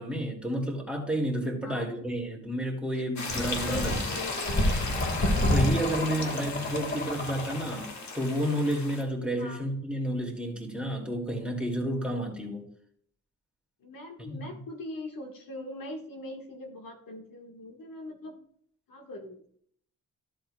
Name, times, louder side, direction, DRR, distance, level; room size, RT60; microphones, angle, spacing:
voice 1, 0.0-4.0 5.4-12.7 14.3-14.5, equal, 5° right, -1 dB, 2.4 m, -30 dB
voice 2, 1.6-1.9 2.9-3.0 3.6-4.7 6.1-6.4 9.4-9.7 13.8-18.4 18.9-19.4, left 1 dB, 85° left, 2 dB, 1.6 m, -41 dB
sound 1, 3.2-9.0, left 3 dB, 55° left, 1.7 m, -36 dB
sound 2, 3.3-7.9, left 1 dB, 35° left, 1.8 m, -29 dB
14.0 x 7.7 x 2.3 m, 0.62 s
wide cardioid pair, 125°, 33 cm